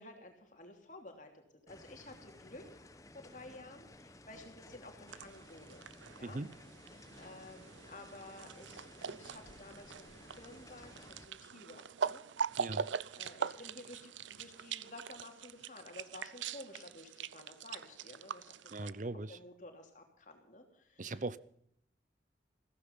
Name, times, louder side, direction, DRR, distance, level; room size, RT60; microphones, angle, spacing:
voice 1, 0.0-2.8 3.1-5.8 6.2-6.4 7.1-12.2 13.2-18.9 19.3-21.4, left 2 dB, 45° left, 3.2 m, -53 dB
sound 1, 1.7-11.3, left 1 dB, 20° left, 1.1 m, -56 dB
sound 2, 5.1-18.9, right 6 dB, 90° right, 0.6 m, -42 dB
voice 2, 6.2-6.5 12.6-12.9 18.7-19.4 21.0-21.4, right 2 dB, 45° right, 0.7 m, -39 dB
15.5 x 15.0 x 5.5 m
head